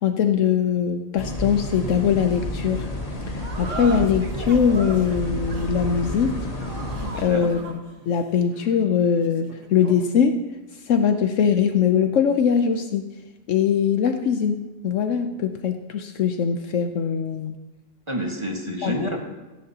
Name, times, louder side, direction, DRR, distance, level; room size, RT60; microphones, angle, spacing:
voice 1, 0.0-2.9 3.3-6.4 7.2-7.8 8.1-10.4 10.9-13.0 13.5-14.6 14.8-17.5 18.8-19.2, left 7 dB, 75° left, 6 dB, 1.0 m, -21 dB
sound 1, 1.2-7.2, left 1 dB, 30° left, 1.5 m, -30 dB
sound 2, 3.4-10.1, right 3 dB, 70° right, 1.5 m, -38 dB
voice 2, 7.0-7.5 18.1-19.2, equal, 25° right, 1 dB, 1.5 m, -28 dB
17.0 x 14.5 x 2.9 m, 1.2 s
omnidirectional pair, 1.3 m